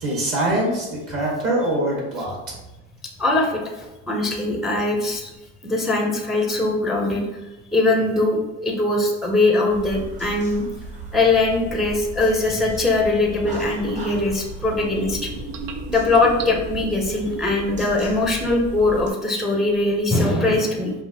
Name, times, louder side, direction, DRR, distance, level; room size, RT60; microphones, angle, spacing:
voice 1, 0.0-2.4, right 1 dB, 40° right, -2 dB, 1.1 m, -23 dB
voice 2, 3.2-5.3 5.6-7.3 7.7-10.6 11.1-15.3 15.9-20.9, left 2 dB, ahead, 1 dB, 0.4 m, -21 dB
sound 1, 9.3-9.4 11.8-11.9 13.3-14.1 14.7-18.1 18.5-19.0 19.6-20.1, right 5 dB, 70° right, 0.6 m, -37 dB
sound 2, 9.7-19.1, right 2 dB, 20° right, 0.8 m, -36 dB
4.9 x 2.8 x 2.7 m, 1.0 s
cardioid pair, 130°, 34 cm